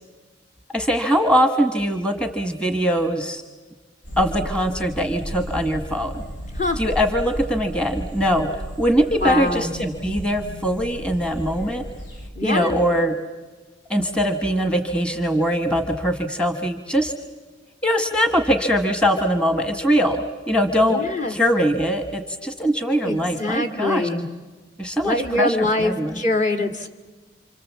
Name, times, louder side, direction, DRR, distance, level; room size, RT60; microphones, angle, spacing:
voice 1, 0.7-3.4 4.2-6.2 6.8-11.9 12.4-13.1 13.9-17.1 17.8-21.0 21.3-24.1 24.8-26.2, equal, 5° left, 6 dB, 1.3 m, -22 dB
sound 1, 4.0-12.3, equal, 80° left, 2.9 m, -34 dB
voice 2, 9.2-9.7 12.4-12.8 20.8-21.3 23.0-24.3 25.0-26.9, left 2 dB, 40° left, 5 dB, 2.1 m, -23 dB
28.5 x 26.5 x 7.4 m, 1.3 s
head